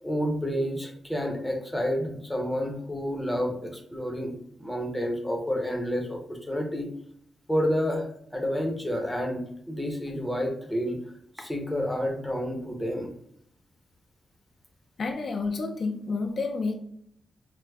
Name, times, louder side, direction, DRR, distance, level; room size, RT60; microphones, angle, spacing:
voice 1, 0.0-6.9 7.5-8.1 8.3-11.0 11.4-13.1, equal, 5° left, 1 dB, 0.6 m, -29 dB
voice 2, 15.0-16.8, left 4 dB, 50° left, 3 dB, 0.3 m, -29 dB
4.6 x 2.0 x 2.2 m, 0.69 s
wide cardioid pair, 110°, 0 cm